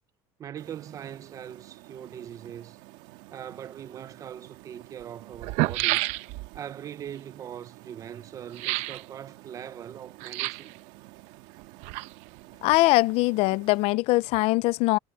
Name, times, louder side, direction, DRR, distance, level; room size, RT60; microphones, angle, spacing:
voice 1, 0.4-2.8 3.3-6.0 6.5-10.8, right 9 dB, 30° right, 0.6 m, -41 dB
sound 1, 0.6-13.8, right 19 dB, 85° right, 1.8 m, -50 dB
sound 2, 4.0-4.1 5.0-5.1 5.3-6.6 8.5-9.0 10.2-10.8 11.6-12.4 12.7-12.8, right 19 dB, 70° right, 0.8 m, -29 dB
voice 2, 12.6-15.0, left 21 dB, 60° left, 0.4 m, -22 dB
cardioid pair, 170°, 12 cm